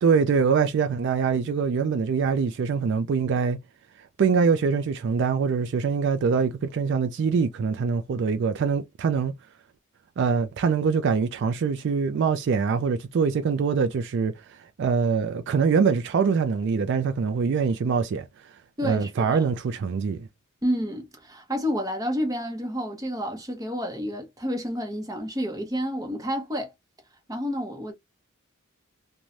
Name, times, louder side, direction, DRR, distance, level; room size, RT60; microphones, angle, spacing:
voice 1, 0.0-3.6 4.2-9.3 10.2-18.3 18.5-20.3, right 5 dB, 60° right, 0.3 m, -24 dB
voice 2, 18.8-19.4 20.6-26.7 27.3-27.9, equal, 15° right, 0.8 m, -30 dB
3.1 x 2.2 x 2.5 m
head